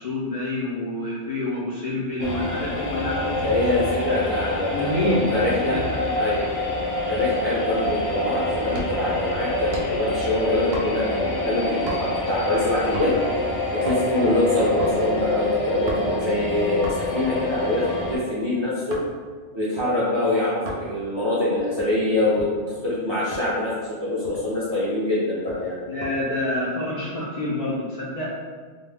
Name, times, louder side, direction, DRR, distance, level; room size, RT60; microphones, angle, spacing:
voice 1, 0.0-3.7 4.7-6.2 25.8-28.3, left 1 dB, 70° left, -7 dB, 0.3 m, -27 dB
sound 1, 2.2-18.2, left 1 dB, 90° left, 0.9 m, -27 dB
voice 2, 3.4-5.8 6.1-6.4 7.1-13.2 13.7-19.0 19.5-22.5 22.8-23.7 24.0-25.8, left 2 dB, 45° right, -8 dB, 0.3 m, -24 dB
sound 2, 7.8-8.2 8.7-9.1 9.7-10.1 10.7-11.2 11.9-12.3 12.9-13.3 13.7-14.1 14.8-15.0 15.9-16.2 16.8-17.2 17.8-19.1 19.8-19.9 20.7-20.9 21.6-22.6 23.3-23.5 23.9-24.0 24.2-24.7 25.5-26.2 26.5-26.8, right 1 dB, 65° right, 0.8 m, -36 dB
2.2 x 2.0 x 3.2 m, 1.5 s
omnidirectional pair, 1.2 m